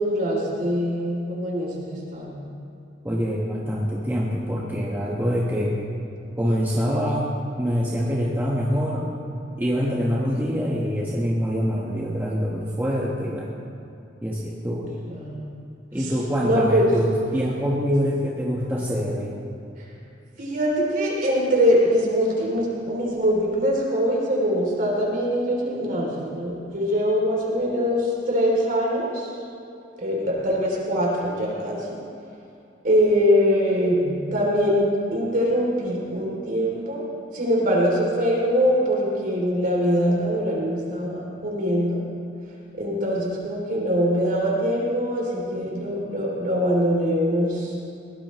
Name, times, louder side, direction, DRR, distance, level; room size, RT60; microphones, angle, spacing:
voice 1, 0.0-2.3 15.1-15.4 16.0-16.1 16.4-16.9 20.4-29.3 30.0-31.9 32.8-37.0 37.3-42.0 42.8-47.8, equal, 50° right, -3 dB, 3.0 m, -23 dB
voice 2, 3.0-5.8 6.4-7.3 7.6-9.1 9.6-13.6 14.2-14.9 15.9-19.4, equal, 10° right, -4 dB, 1.3 m, -25 dB
21.5 x 17.5 x 3.1 m, 2.7 s
head